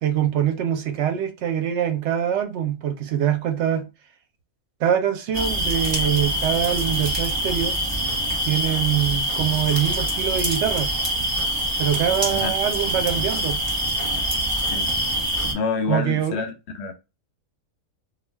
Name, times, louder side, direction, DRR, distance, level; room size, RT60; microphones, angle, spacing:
voice 1, 0.0-3.8 4.8-7.8 8.4-10.9 11.8-13.6 15.9-16.4, right 9 dB, 65° right, 0.8 m, -24 dB
sound 1, 5.3-15.5, right 1 dB, 20° right, 0.7 m, -25 dB
voice 2, 15.5-16.9, left 4 dB, 65° left, 0.7 m, -27 dB
2.4 x 2.2 x 3.3 m
omnidirectional pair, 1.4 m